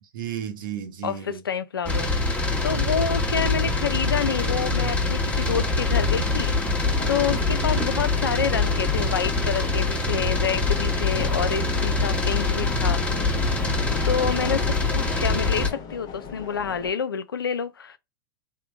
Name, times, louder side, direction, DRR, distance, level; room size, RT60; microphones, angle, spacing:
voice 1, 0.0-1.4 13.5-13.8, right 9 dB, 70° right, 0.8 m, -34 dB
voice 2, 1.0-2.2 2.6-13.0 14.0-18.0, left 7 dB, 90° left, 0.5 m, -28 dB
sound 1, 1.9-15.7, left 3 dB, 10° left, 1.1 m, -24 dB
sound 2, 5.5-16.9, left 7 dB, 35° left, 0.8 m, -37 dB
3.7 x 2.2 x 3.4 m
hypercardioid pair, 100°, 12 cm